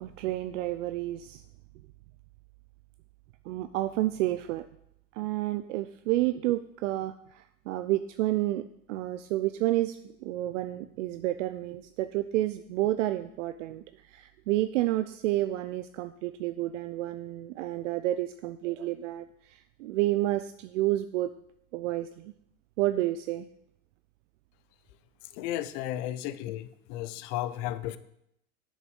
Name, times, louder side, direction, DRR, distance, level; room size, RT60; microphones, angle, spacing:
voice 1, 0.0-1.4 3.4-4.7 5.1-21.3 21.7-22.3 22.8-23.5, right 15 dB, 60° right, 11 dB, 0.5 m, -30 dB
voice 2, 25.3-28.0, left 13 dB, 40° left, 13 dB, 0.6 m, -34 dB
7.4 x 6.4 x 5.3 m, 0.76 s
hypercardioid pair, 105°, 44 cm